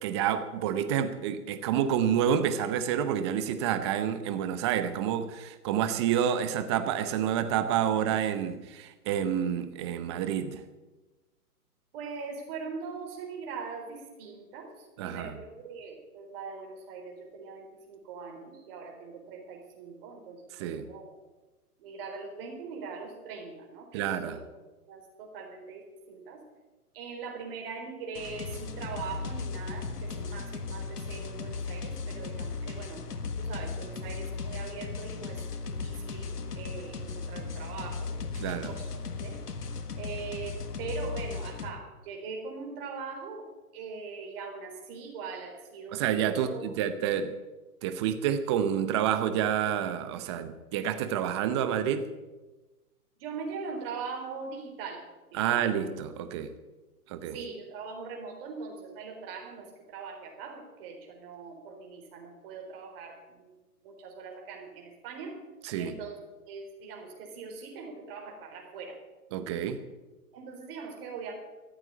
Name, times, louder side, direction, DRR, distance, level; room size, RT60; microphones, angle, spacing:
voice 1, 0.0-10.6 15.0-15.3 20.6-20.9 23.9-24.4 38.4-38.7 45.9-47.3 47.8-52.1 55.3-56.5 57.1-57.4 65.6-66.0 69.3-69.8, right 9 dB, 20° right, 10 dB, 0.7 m, -29 dB
voice 2, 11.9-21.1 21.8-24.4 24.9-26.4 26.9-33.0 33.4-35.4 35.6-38.1 38.7-39.3 40.0-43.4 43.7-46.0 46.4-46.6 53.2-55.0 55.3-55.5 57.3-63.5 63.8-65.4 65.8-66.2 66.5-69.0 70.3-71.3, right 5 dB, 35° right, 1 dB, 4.1 m, -41 dB
sound 1, 28.1-41.7, left 4 dB, 85° left, 1.6 m, -36 dB
14.0 x 8.0 x 8.8 m, 1.2 s
hypercardioid pair, 145°, 46 cm